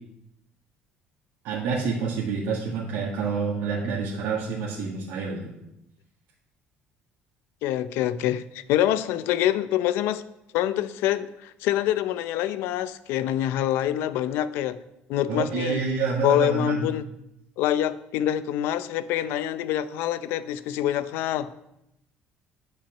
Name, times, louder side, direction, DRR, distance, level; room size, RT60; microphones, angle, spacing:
voice 1, 1.4-5.5 15.3-16.9, right 5 dB, 80° right, 1.8 m, -28 dB
voice 2, 7.6-10.2 10.5-14.8 15.1-15.8 16.2-17.1 17.6-21.5, left 12 dB, 80° left, 0.6 m, -25 dB
10.5 x 5.8 x 7.2 m
cardioid pair, 180°, 4 cm